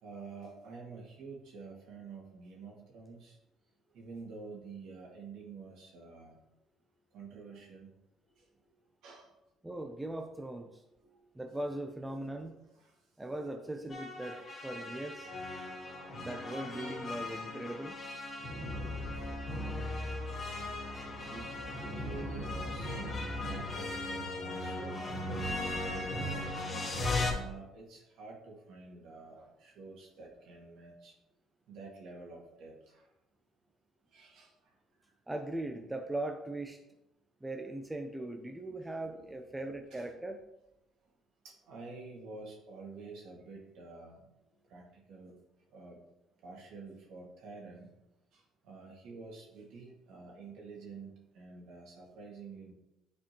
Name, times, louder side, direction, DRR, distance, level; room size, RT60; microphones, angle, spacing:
voice 1, 0.0-3.4 3.9-6.4 7.1-7.9 9.0-9.3 12.8-12.9 18.5-19.6 20.1-20.2 20.8-26.4 27.2-31.1 31.7-33.0 34.1-34.5 39.2-39.3 39.9-40.2 41.4-44.3 44.7-45.4 45.7-46.0 46.4-47.9 48.3-52.7, right 4 dB, 75° right, -1 dB, 2.0 m, -49 dB
voice 2, 9.6-12.6 13.2-15.3 16.2-18.0 35.3-36.8 37.4-40.4, right 1 dB, 10° right, 5 dB, 0.6 m, -40 dB
sound 1, 13.9-27.3, left 2 dB, 30° left, 1.9 m, -37 dB
9.9 x 4.3 x 3.0 m, 0.91 s
cardioid pair, 95°, 0 cm